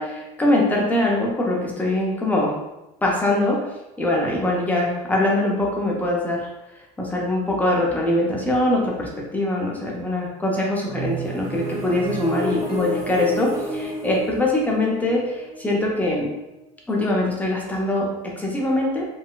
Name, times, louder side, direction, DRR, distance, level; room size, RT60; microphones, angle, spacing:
voice 1, 0.0-2.5 3.0-3.6 4.0-6.4 7.0-16.3 16.9-18.1 18.4-19.1, left 1 dB, 10° left, -2 dB, 0.5 m, -22 dB
sound 1, 10.9-16.6, right 1 dB, 35° right, 0.7 m, -31 dB
3.8 x 2.1 x 2.2 m, 0.95 s
cardioid pair, 155°, 19 cm